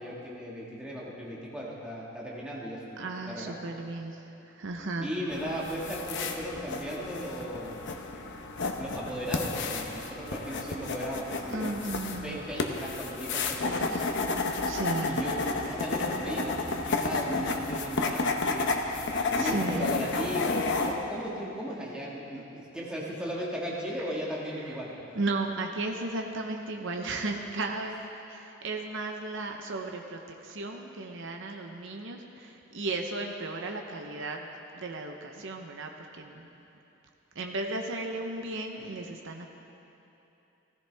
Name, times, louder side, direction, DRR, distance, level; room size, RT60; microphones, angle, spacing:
voice 1, 0.0-3.5 5.0-7.7 8.8-11.7 12.1-13.9 15.1-18.7 19.3-24.9, equal, 5° right, -6 dB, 1.7 m, -36 dB
voice 2, 3.0-5.1 11.5-12.4 13.9-14.0 14.6-15.2 18.8-20.0 22.3-22.4 24.7-24.8 25.2-34.5 34.7-36.5 37.3-39.5, right 2 dB, 65° right, 3 dB, 0.8 m, -35 dB
sound 1, 5.3-20.9, left 3 dB, 60° left, 0.9 m, -31 dB
16.0 x 14.5 x 3.4 m, 2.9 s
head